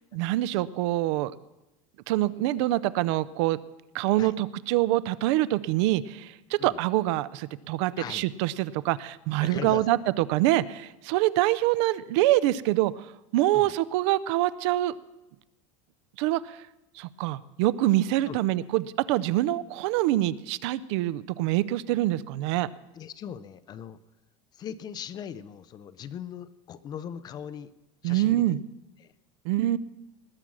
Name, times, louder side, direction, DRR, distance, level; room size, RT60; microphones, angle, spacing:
voice 1, 0.1-1.3 2.1-3.6 3.9-12.9 13.3-14.9 16.2-16.6 17.0-22.7 28.0-28.6 29.4-29.8, right 15 dB, 60° right, 18 dB, 0.5 m, -25 dB
voice 2, 9.4-9.9 13.5-13.7 18.3-18.5 22.9-24.0 24.5-27.7 28.0-28.5 29.0-29.1, left 9 dB, 25° left, 16 dB, 0.4 m, -39 dB
19.5 x 7.3 x 6.2 m, 0.98 s
supercardioid pair, 160°, 16 cm